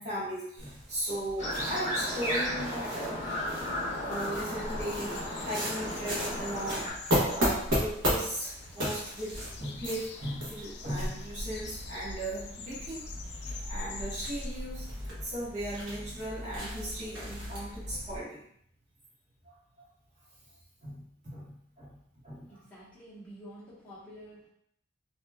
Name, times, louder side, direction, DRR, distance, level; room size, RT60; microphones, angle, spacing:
voice 1, 0.0-3.4 4.0-6.9 7.2-13.0 13.7-18.4 19.4-19.5 20.8-22.0 22.2-22.6, right 1 dB, 35° right, -8 dB, 1.3 m, -37 dB
sound 1, 0.6-18.2, equal, 75° right, 1.0 m, -36 dB
sound 2, 1.4-6.9, left 1 dB, 35° left, 1.2 m, -34 dB
sound 3, 3.3-14.7, left 5 dB, 55° left, 0.3 m, -47 dB
voice 2, 22.5-24.5, equal, 5° left, -11 dB, 1.1 m, -49 dB
3.1 x 2.7 x 2.3 m, 0.71 s
head